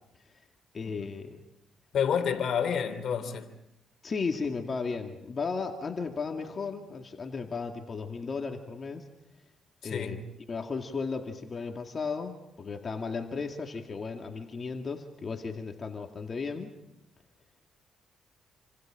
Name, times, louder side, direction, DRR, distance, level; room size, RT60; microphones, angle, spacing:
voice 1, 0.7-1.4 4.0-9.1 9.8-10.2 10.5-16.7, left 4 dB, 40° left, 2.3 m, -35 dB
voice 2, 1.9-3.5 9.8-10.2, left 7 dB, 60° left, 3.1 m, -29 dB
28.5 x 26.0 x 5.1 m
cardioid pair, 90°, 0 cm